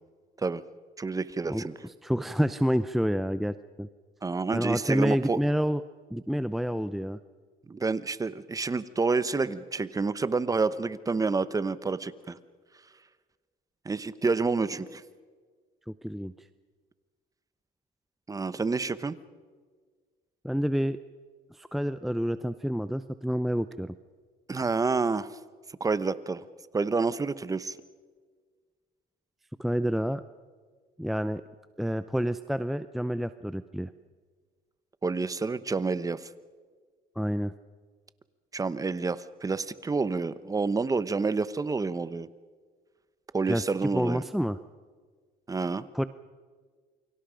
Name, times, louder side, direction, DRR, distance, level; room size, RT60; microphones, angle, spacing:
voice 1, 1.0-1.7 4.2-5.4 7.7-12.4 13.8-15.0 18.3-19.2 24.5-25.4 25.8-26.4 26.7-27.8 35.0-36.3 38.5-42.3 43.3-44.2 45.5-45.9, right 4 dB, 20° right, 15 dB, 1.0 m, -28 dB
voice 2, 1.5-3.9 4.5-5.8 6.1-7.2 16.0-16.3 20.4-21.0 21.5-23.9 29.6-30.2 31.0-31.4 31.8-33.9 37.2-37.5 43.5-43.6 43.9-44.6 45.9-46.0, equal, ahead, 12 dB, 0.6 m, -28 dB
28.5 x 24.0 x 5.1 m, 1.5 s
cardioid pair, 110°, 17 cm